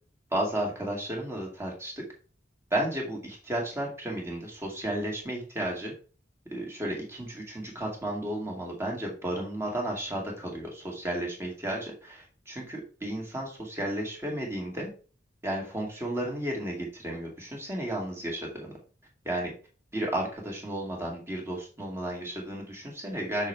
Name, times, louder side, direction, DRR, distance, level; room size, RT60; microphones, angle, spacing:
voice 1, 0.3-2.0 2.7-5.9 6.5-14.9 15.4-18.7 19.2-19.5 19.9-23.5, right 1 dB, 15° right, -1 dB, 2.0 m, -33 dB
6.6 x 6.3 x 3.3 m, 0.38 s
head